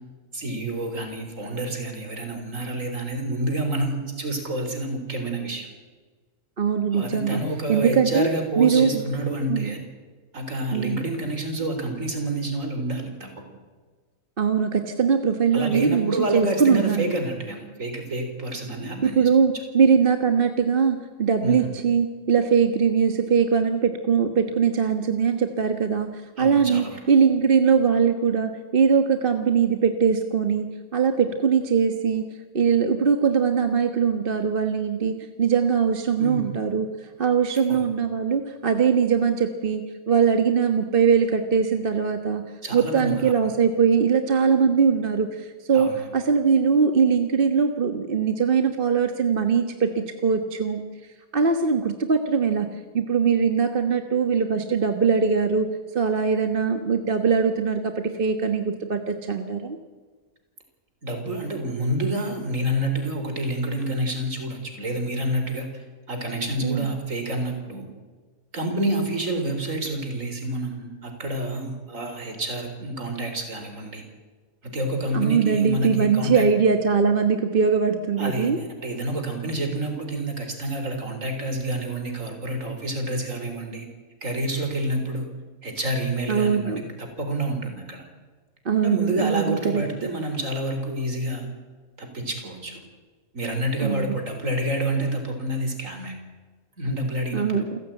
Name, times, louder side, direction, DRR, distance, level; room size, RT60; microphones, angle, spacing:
voice 1, 0.3-5.7 6.9-9.8 10.3-13.3 15.5-19.3 21.4-21.7 26.4-27.0 36.2-36.5 37.7-37.8 42.6-43.3 45.7-46.1 61.0-67.9 68.5-74.0 74.6-76.5 78.2-83.9 84.2-85.3 85.6-88.1 88.8-91.5 92.0-92.8 93.3-96.2 96.8-97.6, right 1 dB, 55° right, 5 dB, 4.4 m, -28 dB
voice 2, 6.6-7.4 7.7-8.3 8.6-9.0 9.5-9.7 10.7-11.0 14.4-17.1 19.0-36.9 37.2-42.4 42.7-50.8 51.3-52.7 52.9-59.8 66.6-66.9 75.1-78.6 86.3-86.8 88.6-89.8 93.8-94.1 97.3-97.8, right 6 dB, 40° right, 6 dB, 1.4 m, -21 dB
28.5 x 15.0 x 9.0 m, 1.4 s
omnidirectional pair, 1.6 m